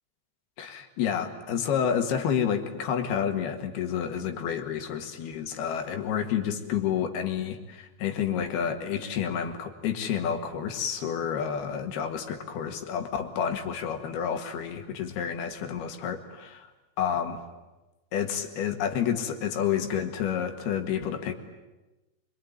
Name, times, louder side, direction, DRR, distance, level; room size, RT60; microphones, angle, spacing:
voice 1, 0.6-16.7 17.0-17.4 18.1-21.4, left 8 dB, 65° left, 6 dB, 3.5 m, -29 dB
26.5 x 23.0 x 9.6 m, 1.1 s
omnidirectional pair, 5.1 m